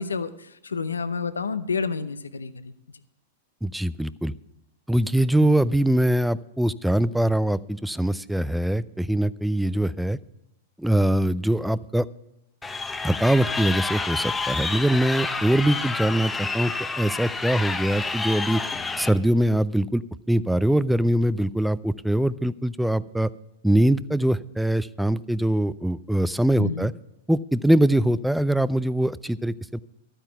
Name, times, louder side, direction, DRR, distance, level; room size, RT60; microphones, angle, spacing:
voice 1, 0.0-2.7 26.6-26.9, left 5 dB, 90° left, 13 dB, 0.7 m, -29 dB
voice 2, 3.6-4.3 4.9-10.2 10.8-12.1 13.0-18.6 19.0-23.3 23.6-26.9 27.3-29.8, right 1 dB, ahead, 18 dB, 0.4 m, -23 dB
Crowd, 12.6-19.1, left 4 dB, 15° left, 0.8 m, -29 dB
12.5 x 9.0 x 5.8 m, 0.88 s
hypercardioid pair, 105°, 0 cm